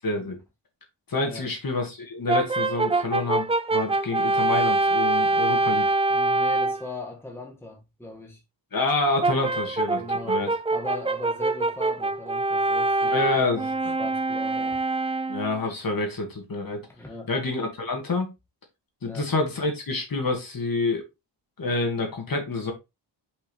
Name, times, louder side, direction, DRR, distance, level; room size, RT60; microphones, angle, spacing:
voice 1, 0.0-0.4 1.1-6.0 8.7-10.0 10.3-10.5 13.0-13.9 15.3-16.8 17.3-18.3 19.0-21.0 21.6-22.7, left 3 dB, 50° left, 2.2 m, -27 dB
Brass instrument, 2.3-6.8 9.2-15.5, right 2 dB, 15° right, 0.3 m, -24 dB
voice 2, 6.1-8.4 10.0-10.4 10.7-14.8 16.9-17.3 19.0-19.3, left 2 dB, 5° left, 1.4 m, -39 dB
5.8 x 5.4 x 3.3 m
wide cardioid pair, 140°, 44 cm